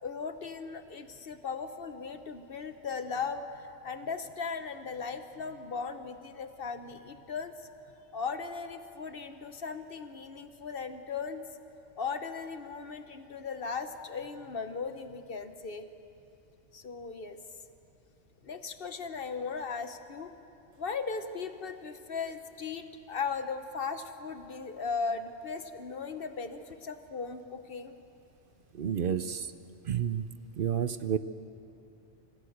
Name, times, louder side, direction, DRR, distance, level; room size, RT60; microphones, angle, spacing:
voice 1, 0.0-7.7 8.1-11.4 12.0-15.8 16.7-17.4 18.4-20.3 20.8-27.9, left 5 dB, 50° left, 9 dB, 1.1 m, -37 dB
voice 2, 28.7-29.5 29.8-30.3 30.6-31.2, right 8 dB, 55° right, 12 dB, 0.7 m, -30 dB
26.0 x 15.5 x 7.9 m, 2.7 s
omnidirectional pair, 1.3 m